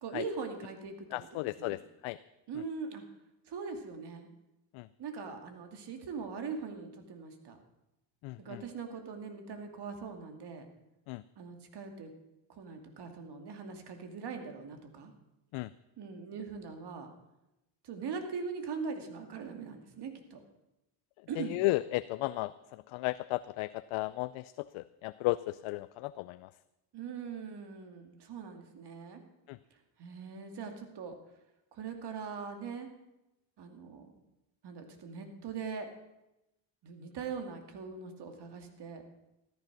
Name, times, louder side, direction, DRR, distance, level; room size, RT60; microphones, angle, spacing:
voice 1, 0.0-1.8 2.5-3.0 3.5-4.3 5.0-7.6 8.4-10.7 11.4-12.1 12.5-15.1 16.0-17.1 17.8-20.4 21.3-21.6 26.9-29.2 29.7-31.2 31.7-32.9 33.6-34.1 34.6-35.9 36.8-39.0, right 5 dB, 55° right, 5 dB, 2.4 m, -41 dB
voice 2, 1.1-2.2 4.8-4.9 8.2-8.4 11.1-11.2 15.5-15.7 21.5-22.5 22.9-26.4 29.5-29.6, left 19 dB, 90° left, 14 dB, 0.6 m, -34 dB
14.0 x 13.5 x 6.1 m, 0.93 s
cardioid pair, 115°, 47 cm